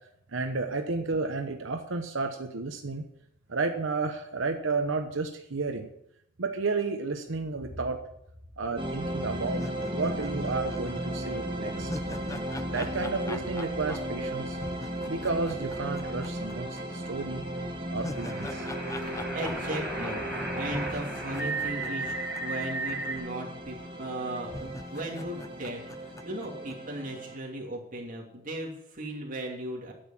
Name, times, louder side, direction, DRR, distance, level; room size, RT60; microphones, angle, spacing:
voice 1, 0.3-3.1 3.5-5.9 6.4-8.0 8.6-9.6 9.9-11.9 12.7-14.6 15.1-17.4 17.9-18.7, right 3 dB, 90° right, 5 dB, 1.0 m, -32 dB
sound 1, 8.8-27.4, right 1 dB, 25° right, 1.7 m, -36 dB
sound 2, 9.5-16.8 17.1-17.2 17.6-22.9 23.2-23.3 24.0-24.1 24.5-26.7, left 2 dB, 15° left, 0.5 m, -44 dB
sound 3, 18.1-23.2, right 2 dB, ahead, 4.6 m, -35 dB
voice 2, 19.0-29.9, right 1 dB, 45° right, -1 dB, 2.8 m, -37 dB
10.0 x 8.1 x 7.2 m, 0.76 s
head